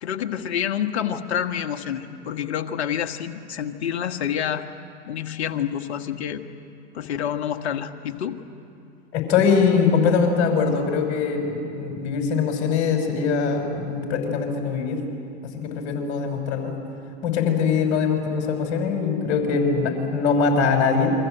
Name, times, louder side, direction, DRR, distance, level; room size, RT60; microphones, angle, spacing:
voice 1, 0.0-4.6 5.1-6.4 6.9-8.4, left 9 dB, 75° left, 7 dB, 1.6 m, -28 dB
voice 2, 9.1-15.0 15.5-16.7 17.2-21.1, left 5 dB, 55° left, 3 dB, 6.0 m, -22 dB
28.5 x 23.5 x 8.0 m, 2.6 s
hypercardioid pair, 90°, 33 cm